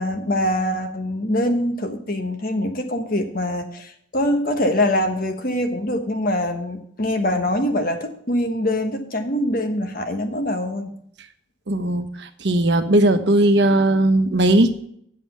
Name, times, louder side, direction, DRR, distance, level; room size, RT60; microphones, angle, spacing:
voice 1, 0.0-10.9, left 1 dB, 50° left, 6 dB, 1.2 m, -23 dB
voice 2, 11.7-14.7, right 1 dB, 65° right, 7 dB, 1.0 m, -18 dB
8.3 x 7.6 x 5.5 m, 0.67 s
head